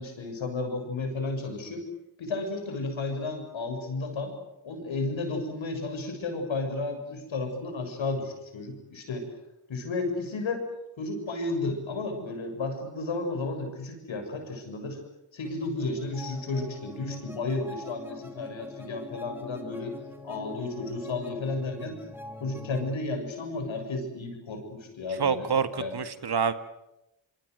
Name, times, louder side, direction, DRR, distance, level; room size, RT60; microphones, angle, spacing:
voice 1, 0.0-1.9 2.2-4.3 4.6-9.3 9.7-10.6 11.0-15.0 15.3-20.0 20.2-22.0 22.4-25.9, left 3 dB, 70° left, 5 dB, 7.2 m, -33 dB
sound 1, 15.4-22.9, left 1 dB, 5° right, 3.8 m, -44 dB
voice 2, 25.2-26.5, right 6 dB, 55° right, 11 dB, 2.0 m, -27 dB
25.5 x 24.0 x 8.1 m, 0.90 s
supercardioid pair, 50°, 47 cm